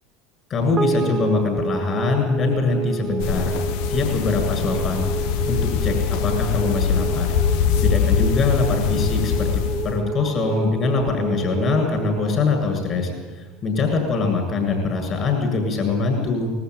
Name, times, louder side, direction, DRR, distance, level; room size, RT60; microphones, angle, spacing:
voice 1, 0.5-3.5 3.9-5.1 5.5-7.4 7.8-13.1 13.4-16.5, left 3 dB, 40° left, 3 dB, 7.7 m, -23 dB
sound 1, 0.8-13.3, right 5 dB, 25° right, 1.2 m, -30 dB
sound 2, 3.2-10.0, left 8 dB, 70° left, 1.2 m, -23 dB
20.5 x 14.0 x 9.7 m, 1.3 s
hypercardioid pair, 90°, 0 cm